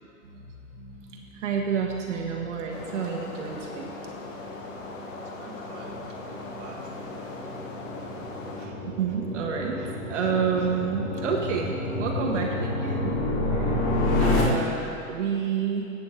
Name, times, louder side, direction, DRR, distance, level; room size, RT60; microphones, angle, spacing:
voice 1, 0.3-3.9 8.6-13.2 13.5-13.8 14.2-15.9, right 6 dB, 55° right, 1 dB, 1.2 m, -30 dB
sound 1, 0.8-10.8, left 2 dB, 5° right, 0.4 m, -50 dB
sound 2, 2.7-8.7, left 3 dB, 60° left, 1.6 m, -40 dB
sound 3, 3.3-14.4, left 2 dB, 35° left, 2.3 m, -30 dB
voice 2, 5.2-7.2, right 4 dB, 25° right, -2 dB, 1.4 m, -48 dB
15.5 x 8.2 x 3.3 m, 2.8 s
hypercardioid pair, 135°, 44 cm